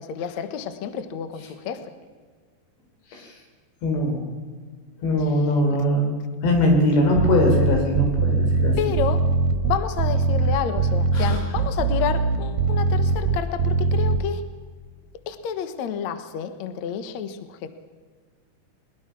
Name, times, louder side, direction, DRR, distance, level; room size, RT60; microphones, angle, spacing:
voice 1, 0.0-1.9 5.2-5.4 8.8-9.2 9.6-14.4 15.3-17.7, left 8 dB, 65° left, 10 dB, 1.8 m, -30 dB
voice 2, 3.8-4.2 5.0-6.1 6.4-8.8 11.1-11.4, left 1 dB, 85° left, 2 dB, 6.2 m, -21 dB
sound 1, 7.2-14.2, right 4 dB, 70° right, 3.4 m, -21 dB
21.5 x 21.0 x 6.0 m, 1.5 s
omnidirectional pair, 4.9 m